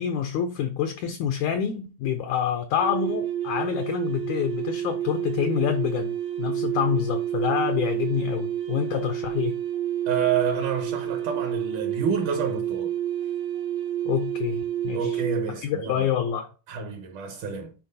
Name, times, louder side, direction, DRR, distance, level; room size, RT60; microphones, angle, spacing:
voice 1, 0.0-9.5 14.1-15.2 15.6-16.5, left 9 dB, 80° left, 1.7 m, -27 dB
sound 1, 2.8-15.5, right 11 dB, 85° right, 2.6 m, -29 dB
voice 2, 10.1-12.9 14.9-16.0 16.7-17.7, right 6 dB, 70° right, 2.3 m, -29 dB
10.5 x 4.4 x 2.7 m
omnidirectional pair, 4.0 m